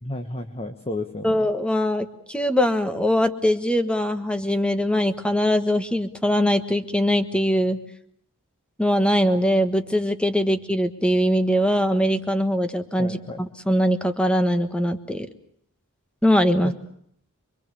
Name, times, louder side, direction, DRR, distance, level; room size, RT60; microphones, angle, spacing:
voice 1, 0.0-1.5 13.0-13.4 16.6-16.7, left 1 dB, 30° left, 7 dB, 1.3 m, -32 dB
voice 2, 1.2-7.8 8.8-15.3 16.2-16.7, equal, 5° left, 9 dB, 1.3 m, -22 dB
26.0 x 23.0 x 6.9 m, 0.68 s
head